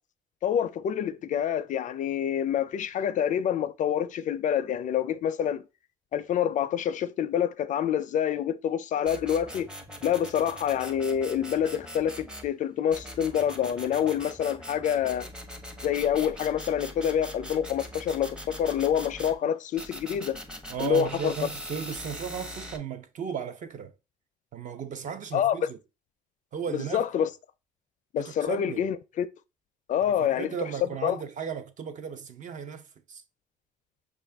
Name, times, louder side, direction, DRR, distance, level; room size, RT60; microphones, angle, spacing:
voice 1, 0.4-5.6 6.1-9.7 10.0-15.3 15.8-20.4 20.8-21.3 25.3-25.6 26.7-27.3 28.1-29.3 29.9-30.5 31.0-31.2, left 9 dB, 50° left, 0.4 m, -27 dB
sound 1, 9.1-12.5 12.9-19.4 19.8-22.8, equal, 5° right, 0.6 m, -42 dB
voice 2, 20.7-23.9 24.5-25.8 26.5-27.0 28.2-28.9 30.1-32.8 33.1-33.2, right 7 dB, 50° right, 0.6 m, -35 dB
5.6 x 2.4 x 3.3 m
cardioid pair, 110°, 17 cm